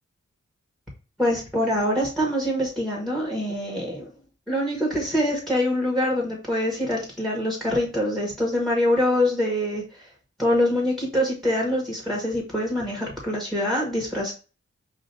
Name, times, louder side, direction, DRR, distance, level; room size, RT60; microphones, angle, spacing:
voice 1, 1.2-4.1 4.5-10.1 10.4-14.3, left 1 dB, ahead, -1 dB, 1.7 m, -24 dB
4.9 x 2.8 x 2.8 m, 0.34 s
wide cardioid pair, 55°, 29 cm